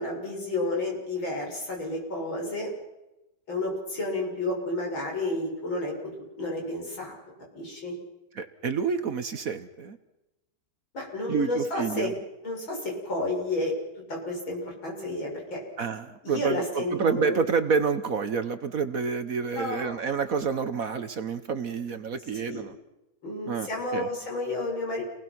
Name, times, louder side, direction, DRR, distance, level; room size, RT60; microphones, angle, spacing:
voice 1, 0.0-2.7 3.5-6.1 6.4-7.2 7.5-7.9 10.9-12.1 12.4-13.7 14.1-15.6 16.2-17.4 19.6-20.0 22.3-22.6 23.2-25.0, left 2 dB, 80° left, -1 dB, 7.6 m, -31 dB
voice 2, 8.3-10.0 11.3-12.1 15.8-22.7 23.5-24.1, right 5 dB, 50° right, 10 dB, 1.4 m, -28 dB
29.5 x 20.0 x 6.1 m, 0.95 s
omnidirectional pair, 2.1 m